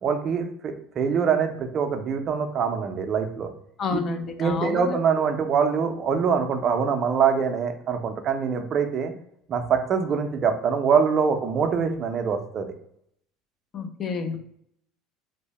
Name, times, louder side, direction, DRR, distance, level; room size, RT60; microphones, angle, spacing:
voice 1, 0.0-3.5 3.9-4.0 4.4-9.1 9.5-12.7, right 6 dB, 40° right, 5 dB, 0.4 m, -24 dB
voice 2, 3.8-5.0 13.7-14.4, left 4 dB, 35° left, 8 dB, 0.4 m, -29 dB
2.6 x 2.1 x 3.1 m, 0.71 s
supercardioid pair, 120°, 0 cm